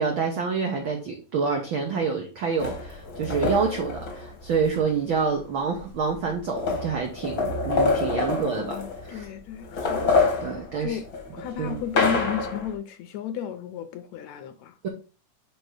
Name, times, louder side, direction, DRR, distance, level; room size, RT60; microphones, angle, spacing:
voice 1, 0.0-8.8 9.1-9.3 10.4-11.0 11.6-11.8 14.8-14.9, right 5 dB, 85° right, 1.1 m, -27 dB
sound 1, 2.6-4.8 5.8-5.9 6.1-9.2 9.6-12.7, left 3 dB, 50° left, 1.1 m, -27 dB
voice 2, 8.5-10.1 10.8-11.0 11.3-14.8, left 9 dB, 75° left, 1.8 m, -33 dB
5.2 x 4.7 x 4.8 m
omnidirectional pair, 3.6 m